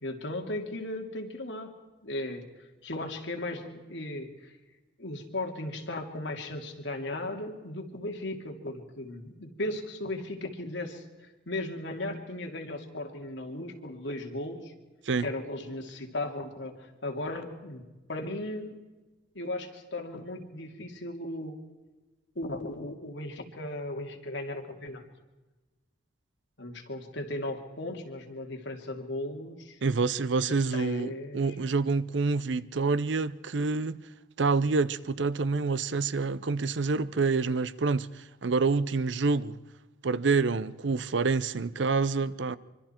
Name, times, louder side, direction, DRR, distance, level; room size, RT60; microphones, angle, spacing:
voice 1, 0.0-1.7 2.0-2.4 2.8-4.5 5.0-14.7 15.2-17.8 18.1-18.8 19.3-21.6 22.3-25.0 26.6-29.8 30.4-31.5, left 1 dB, 75° left, 2.6 m, -36 dB
voice 2, 29.8-34.0 34.4-39.6 40.0-42.6, right 4 dB, 75° right, 0.6 m, -27 dB
24.5 x 24.5 x 4.5 m
head